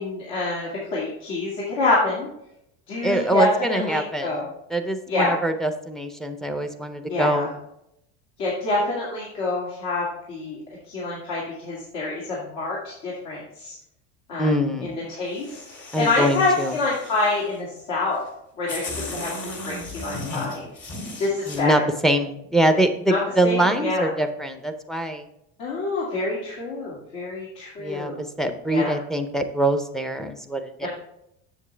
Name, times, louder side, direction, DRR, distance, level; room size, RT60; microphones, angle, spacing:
voice 1, 0.0-2.3 2.9-4.5 5.1-5.4 7.1-7.5 8.4-10.6 10.9-13.7 14.3-14.5 14.8-15.5 16.0-18.2 18.6-19.3 19.7-20.6 21.2-21.8 23.1-24.1 25.6-28.2 28.7-29.0 30.8-30.9, left 2 dB, 65° left, -5 dB, 2.2 m, -26 dB
voice 2, 3.0-4.4 4.7-7.5 14.4-14.9 15.9-16.8 21.5-25.3 27.8-30.9, right 1 dB, ahead, 7 dB, 0.5 m, -24 dB
sound 1, 15.3-17.6 18.3-18.4 18.7-21.6, left 2 dB, 35° left, 2.3 m, -36 dB
7.3 x 7.2 x 3.3 m, 0.79 s
supercardioid pair, 130°, 31 cm